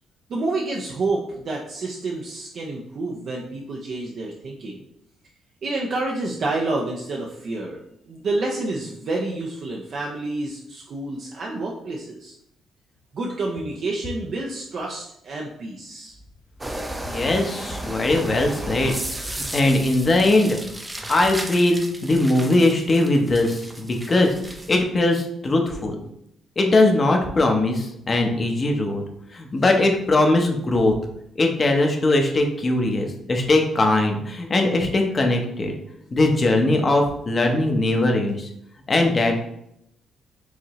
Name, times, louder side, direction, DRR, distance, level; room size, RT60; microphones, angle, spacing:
voice 1, 0.3-4.8 5.6-7.8 8.1-12.3 13.1-16.1, right 2 dB, 60° right, -2 dB, 0.6 m, -29 dB
sound 1, 16.6-24.8, right 1 dB, 15° right, 0.5 m, -34 dB
voice 2, 17.1-18.9 19.2-20.6 21.1-24.3 24.7-26.0 26.6-29.0 29.3-30.9 31.4-35.7 36.1-38.5 38.9-39.4, left 2 dB, 35° left, 3 dB, 0.8 m, -20 dB
4.8 x 2.7 x 3.1 m, 0.76 s
cardioid pair, 90°, 0 cm